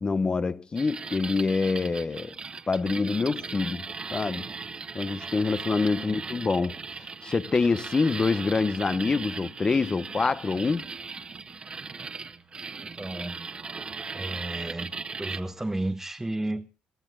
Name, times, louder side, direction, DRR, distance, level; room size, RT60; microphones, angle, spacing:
voice 1, 0.0-2.3 2.7-3.8 4.1-4.5 4.9-10.9, left 4 dB, 30° left, 1.0 m, -26 dB
sound 1, 0.8-15.4, right 4 dB, 35° right, 1.5 m, -38 dB
voice 2, 12.8-13.4 14.1-14.9 15.2-16.7, right 1 dB, 10° right, 1.2 m, -33 dB
28.0 x 14.0 x 2.4 m
hypercardioid pair, 60°, 3 cm